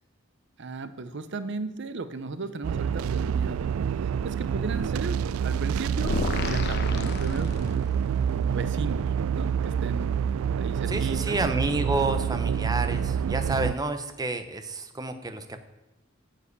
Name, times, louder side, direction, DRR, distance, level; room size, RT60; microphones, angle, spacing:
voice 1, 0.6-3.7 4.0-7.9 8.3-9.1 9.4-10.1 10.6-11.4, right 3 dB, 60° right, 11 dB, 0.7 m, -35 dB
sound 1, 2.6-13.7, right 7 dB, 85° right, 0.3 m, -27 dB
sound 2, 6.0-8.1, left 2 dB, 55° left, 0.9 m, -31 dB
voice 2, 10.9-15.6, right 2 dB, 20° right, 8 dB, 0.7 m, -29 dB
9.8 x 7.6 x 8.2 m, 0.99 s
head